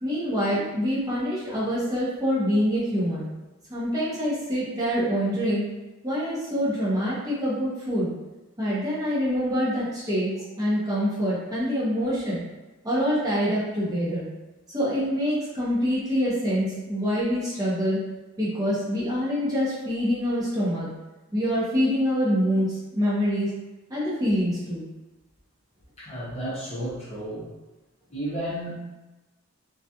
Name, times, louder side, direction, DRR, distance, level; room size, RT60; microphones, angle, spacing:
voice 1, 0.0-3.3 3.7-5.6 6.0-8.1 8.6-12.4 12.8-14.3 14.7-18.0 18.4-20.9 21.3-23.5 23.9-24.8, equal, 15° right, -9 dB, 0.7 m, -25 dB
voice 2, 26.0-27.5 28.1-28.9, right 1 dB, 30° left, -8 dB, 0.7 m, -33 dB
2.3 x 2.2 x 2.7 m, 1.1 s
head